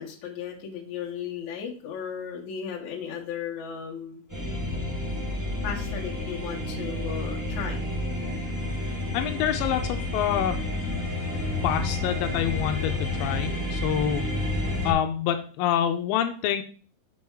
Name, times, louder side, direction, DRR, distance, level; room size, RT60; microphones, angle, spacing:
voice 1, 0.0-4.3 5.6-7.8, left 8 dB, 60° left, -2 dB, 2.8 m, -35 dB
sound 1, 4.3-14.9, left 2 dB, 5° right, 2.0 m, -30 dB
voice 2, 9.1-10.6 11.6-14.3 14.8-16.6, left 10 dB, 90° left, 6 dB, 2.3 m, -27 dB
7.1 x 5.2 x 4.7 m, 0.42 s
omnidirectional pair, 4.0 m